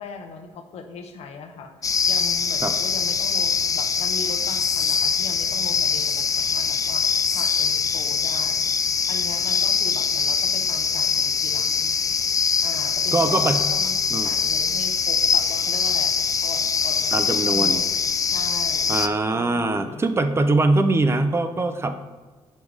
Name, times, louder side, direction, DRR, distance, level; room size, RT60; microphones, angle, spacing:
voice 1, 0.0-8.6 9.1-12.0 12.6-16.1 16.4-17.8 18.2-19.0 19.3-20.0, left 4 dB, 85° left, 5 dB, 0.9 m, -39 dB
sound 1, 1.8-19.1, left 6 dB, 30° left, 0.4 m, -23 dB
voice 2, 13.1-13.6 14.1-14.3 17.1-17.8 18.9-22.0, right 2 dB, 25° right, 9 dB, 0.5 m, -22 dB
5.4 x 4.7 x 6.3 m, 1.3 s
cardioid pair, 130°, 11 cm